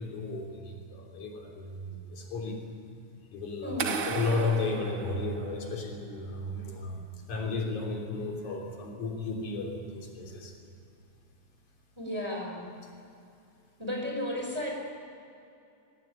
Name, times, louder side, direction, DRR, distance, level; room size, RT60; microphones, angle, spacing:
voice 1, 0.0-2.5 3.3-3.8 4.0-7.0 7.3-10.5, left 3 dB, 80° left, 0 dB, 4.8 m, -33 dB
voice 2, 3.6-4.0 12.0-12.6 13.8-14.7, left 1 dB, 10° right, -1 dB, 5.3 m, -34 dB
sound 1, 3.8-5.9, right 6 dB, 50° right, 1.8 m, -35 dB
24.0 x 17.0 x 9.7 m, 2.6 s
omnidirectional pair, 3.4 m